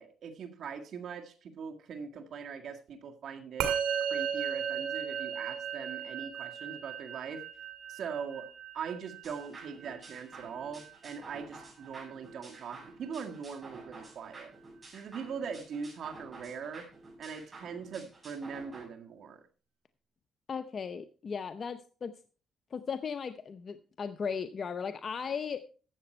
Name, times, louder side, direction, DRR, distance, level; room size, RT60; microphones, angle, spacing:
voice 1, 0.0-3.7 4.0-7.4 7.9-8.5 8.7-14.5 14.9-16.9 17.2-19.4, right 6 dB, 65° right, 5 dB, 1.8 m, -41 dB
Musical instrument, 3.6-13.1, right 8 dB, 90° right, 2.2 m, -37 dB
sound 1, 9.2-18.8, right 2 dB, 30° right, 6.3 m, -51 dB
voice 2, 20.5-22.1 22.7-25.6, left 6 dB, 45° left, 10 dB, 0.7 m, -36 dB
13.0 x 7.8 x 4.4 m, 0.38 s
cardioid pair, 90°, 0 cm